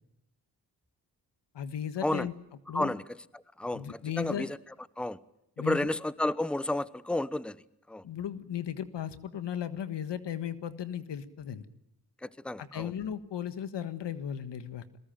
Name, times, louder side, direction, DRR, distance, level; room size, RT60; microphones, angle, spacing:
voice 1, 1.5-2.3 2.7-2.9 3.7-4.4 5.6-5.9 8.0-11.7 12.6-14.8, left 9 dB, 85° left, 12 dB, 1.6 m, -36 dB
voice 2, 3.3-4.6 5.0-5.2 5.6-7.6 7.9-8.0 12.2-12.9, left 1 dB, ahead, 17 dB, 1.0 m, -31 dB
22.5 x 20.0 x 9.0 m, 0.80 s
cardioid pair, 55°, 42 cm